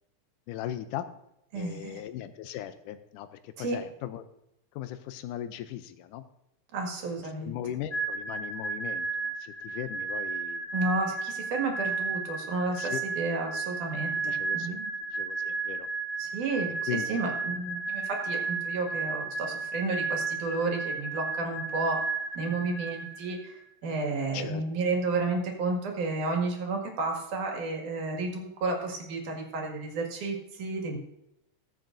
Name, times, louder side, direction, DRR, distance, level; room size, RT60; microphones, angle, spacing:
voice 1, 0.5-1.1 1.5-4.2 4.8-6.2 7.4-10.7 12.8-13.0 14.2-14.8 15.1-15.9 16.9-17.1 24.3-24.6, left 11 dB, 85° left, 11 dB, 2.1 m, -38 dB
voice 2, 1.5-2.0 3.6-3.8 6.7-7.5 10.7-14.9 16.2-22.0 22.4-31.0, right 3 dB, 75° right, 1 dB, 3.4 m, -32 dB
sound 1, 7.9-23.5, right 4 dB, 5° left, 3.0 m, -33 dB
21.0 x 7.8 x 2.6 m, 0.83 s
omnidirectional pair, 3.6 m